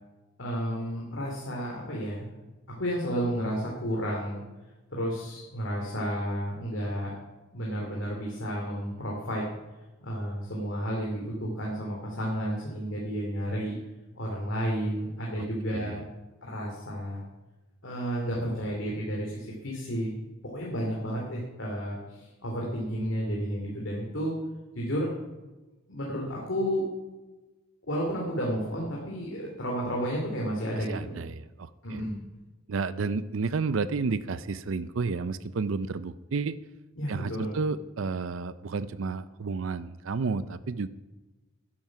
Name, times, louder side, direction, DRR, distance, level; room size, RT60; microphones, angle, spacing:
voice 1, 0.4-2.3 2.7-4.4 4.9-7.1 7.5-9.5 10.0-13.8 14.1-16.0 16.4-17.2 17.8-20.1 20.5-24.4 24.7-25.1 25.9-26.8 27.9-31.2 31.8-32.2 37.0-37.5, equal, 65° left, -3 dB, 2.6 m, -31 dB
voice 2, 15.4-16.0 30.8-32.0 32.7-36.6 37.1-40.9, right 4 dB, 70° right, 15 dB, 0.5 m, -31 dB
12.0 x 10.5 x 5.9 m, 1.2 s
head